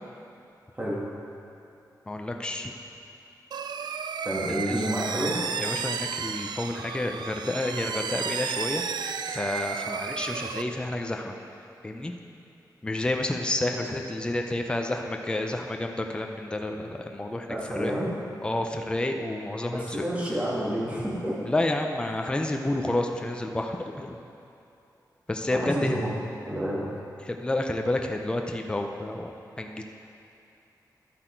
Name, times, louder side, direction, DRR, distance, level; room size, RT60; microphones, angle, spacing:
voice 1, 2.1-2.7 4.5-4.9 5.6-11.4 11.8-12.1 12.8-17.9 18.4-20.0 21.5-24.2 25.3-26.0 27.3-29.3 29.6-29.8, left 1 dB, 15° left, 3 dB, 0.5 m, -30 dB
sound 1, 3.5-10.6, right 6 dB, 80° right, 0.4 m, -33 dB
voice 2, 4.2-5.4 13.8-13.9 17.5-18.2 19.7-21.4 25.5-26.1 26.5-26.8, equal, 20° right, -5 dB, 1.9 m, -29 dB
11.0 x 7.8 x 4.5 m, 2.8 s
wide cardioid pair, 165°, 7 cm